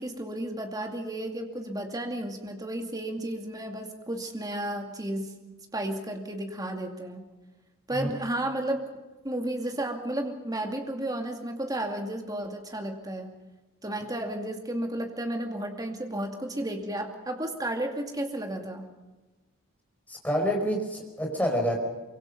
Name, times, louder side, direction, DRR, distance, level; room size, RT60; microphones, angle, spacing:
voice 1, 0.0-5.4 5.7-7.3 7.9-8.9 9.2-13.3 13.8-18.9, right 1 dB, 20° right, 4 dB, 2.4 m, -33 dB
voice 2, 20.1-21.8, equal, 10° left, 1 dB, 4.7 m, -27 dB
24.5 x 23.5 x 5.4 m, 1.2 s
head